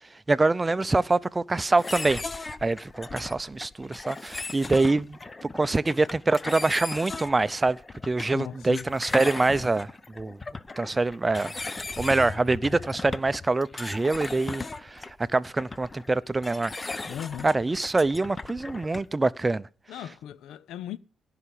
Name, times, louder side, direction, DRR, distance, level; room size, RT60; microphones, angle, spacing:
voice 1, 0.0-7.8 8.0-10.4 10.8-11.5 12.0-17.0 17.4-19.7, right 3 dB, 20° right, 0.6 m, -25 dB
sound 1, 1.8-19.2, left 3 dB, 25° left, 0.9 m, -37 dB
voice 2, 8.3-8.9 17.1-17.5 19.9-21.0, left 10 dB, 80° left, 0.7 m, -37 dB
17.0 x 5.8 x 10.0 m
cardioid pair, 90°, 0 cm